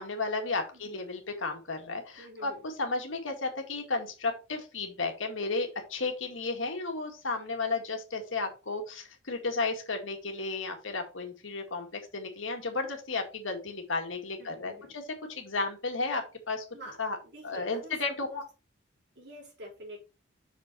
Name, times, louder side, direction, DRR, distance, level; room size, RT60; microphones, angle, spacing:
voice 1, 0.0-15.0 15.3-16.6 17.0-17.2 17.4-18.4, left 3 dB, 85° left, 4 dB, 2.0 m, -33 dB
voice 2, 0.7-1.0 2.2-2.6 14.4-15.0 16.7-18.4 19.2-20.0, equal, 60° right, 0 dB, 3.6 m, -47 dB
6.1 x 5.5 x 4.5 m, 0.31 s
head